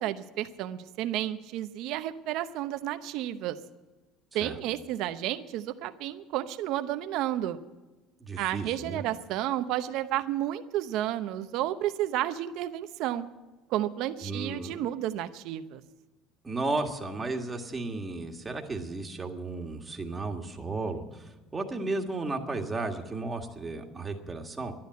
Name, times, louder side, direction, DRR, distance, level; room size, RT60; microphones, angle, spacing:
voice 1, 0.0-3.6 4.3-7.6 8.4-13.3 13.7-15.8, right 13 dB, 65° right, 10 dB, 0.8 m, -31 dB
voice 2, 8.2-9.0 14.2-14.9 16.4-24.7, right 3 dB, 15° right, 3 dB, 1.8 m, -34 dB
12.0 x 10.5 x 9.4 m, 1.2 s
cardioid pair, 120°, 0 cm